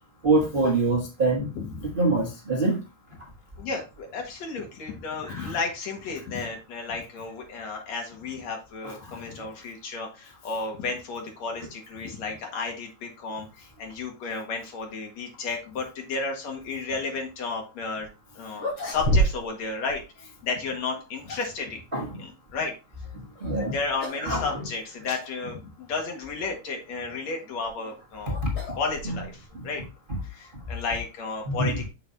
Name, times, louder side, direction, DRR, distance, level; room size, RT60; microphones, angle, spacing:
voice 1, 0.2-1.5 1.8-2.8 5.3-5.5 21.9-22.1 23.4-23.7 24.2-24.4 28.4-28.5 31.5-31.8, right 2 dB, 85° right, 0.4 m, -24 dB
voice 2, 1.3-1.8 3.6-18.1 18.4-21.8 22.1-22.7 23.6-28.4 28.7-29.8 30.3-31.9, left 4 dB, 65° left, 2.9 m, -33 dB
sound 1, 18.0-18.1 18.5-19.6 19.9-20.0 20.9-21.6 23.4-23.7 24.0-24.3 24.6-24.7 25.5-25.6 27.4-29.5, right 1 dB, 40° left, 3.6 m, -29 dB
6.9 x 6.3 x 2.7 m
omnidirectional pair, 3.4 m